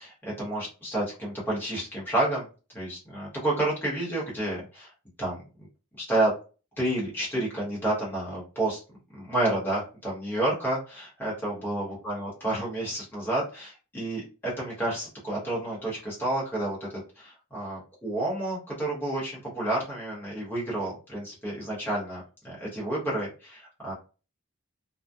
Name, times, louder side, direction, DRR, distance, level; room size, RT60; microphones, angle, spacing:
voice 1, 0.0-2.5 2.7-4.9 5.2-5.4 6.0-6.3 6.8-8.8 9.1-16.9 17.2-23.9, right 1 dB, 10° left, -6 dB, 0.9 m, -30 dB
2.6 x 2.2 x 2.3 m, 0.35 s
head